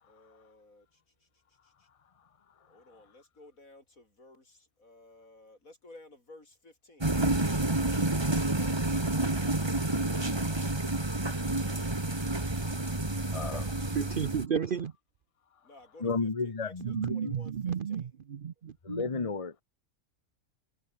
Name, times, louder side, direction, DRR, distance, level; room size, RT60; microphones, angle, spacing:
voice 1, 0.0-1.9 2.7-7.1 15.6-18.1, left 2 dB, 75° left, 6.5 m, -56 dB
sound 1, 7.0-14.5, right 2 dB, 20° right, 1.9 m, -29 dB
voice 2, 13.3-13.9 16.0-17.4 18.8-19.6, left 4 dB, 25° left, 1.1 m, -33 dB
voice 3, 13.9-14.9 16.8-19.3, right 7 dB, 50° right, 0.8 m, -33 dB
omnidirectional pair, 1.5 m